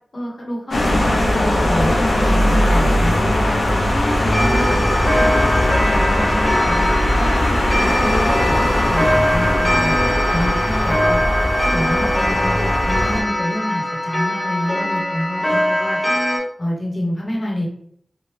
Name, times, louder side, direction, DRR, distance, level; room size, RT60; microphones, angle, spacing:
voice 1, 0.1-1.0 1.4-2.4 2.7-4.8 5.2-9.9 10.3-11.2 11.7-16.0 16.6-17.7, left 1 dB, 60° left, -2 dB, 1.1 m, -27 dB
sound 1, 0.7-13.2, left 1 dB, 80° left, 0.7 m, -19 dB
Clock, 4.3-16.4, equal, 30° left, 1.5 m, -22 dB
2.8 x 2.4 x 3.3 m, 0.66 s
wide cardioid pair, 55°, 0 cm